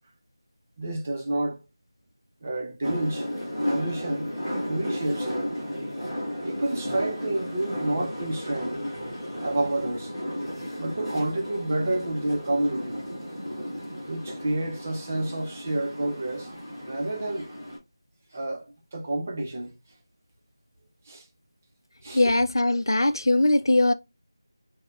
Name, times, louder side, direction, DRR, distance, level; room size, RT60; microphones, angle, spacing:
voice 1, 0.8-1.6 2.4-3.3 3.6-6.1 6.4-8.8 9.4-10.1 10.8-13.0 14.1-16.5 16.8-17.5 18.3-19.8 21.1-21.3 22.0-22.2, right 1 dB, 25° right, 0.6 m, -30 dB
sound 1, 2.8-17.8, equal, 5° left, 1.4 m, -34 dB
voice 2, 22.1-23.9, left 2 dB, 65° left, 0.4 m, -21 dB
6.0 x 2.2 x 2.3 m
figure-of-eight pair, 175°, 2 cm